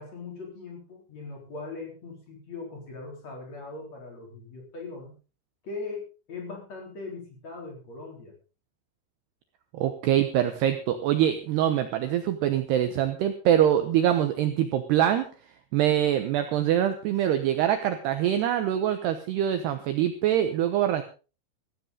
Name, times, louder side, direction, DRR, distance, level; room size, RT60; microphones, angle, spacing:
voice 1, 0.0-5.2 5.6-8.3, left 3 dB, 35° left, 0 dB, 4.7 m, -40 dB
voice 2, 9.7-15.3 15.7-21.0, right 11 dB, 80° right, 9 dB, 2.5 m, -24 dB
15.5 x 15.0 x 3.9 m, 0.34 s
omnidirectional pair, 6.0 m